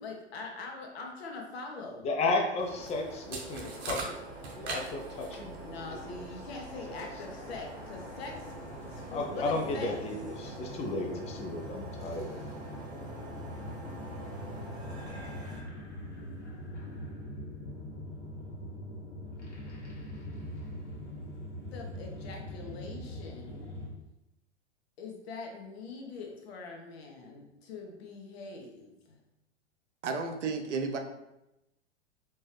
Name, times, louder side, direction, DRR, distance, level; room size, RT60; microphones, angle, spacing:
voice 1, 0.0-2.1 5.6-8.5 8.9-9.9 21.7-23.7 25.0-29.2, left 3 dB, 60° left, 1 dB, 1.1 m, -43 dB
voice 2, 2.0-4.2 4.5-5.6 9.1-12.3, left 2 dB, 20° left, 2 dB, 0.5 m, -33 dB
sound 1, 2.6-15.6, right 1 dB, 10° right, 1.1 m, -45 dB
sound 2, 2.8-2.9 3.3-5.6, right 3 dB, 60° right, 1.1 m, -39 dB
sound 3, 6.8-23.9, left 1 dB, 75° left, 1.4 m, -43 dB
voice 3, 30.0-31.0, right 4 dB, 75° right, 5 dB, 0.7 m, -32 dB
4.4 x 3.0 x 3.3 m, 0.90 s
figure-of-eight pair, 100°, 36 cm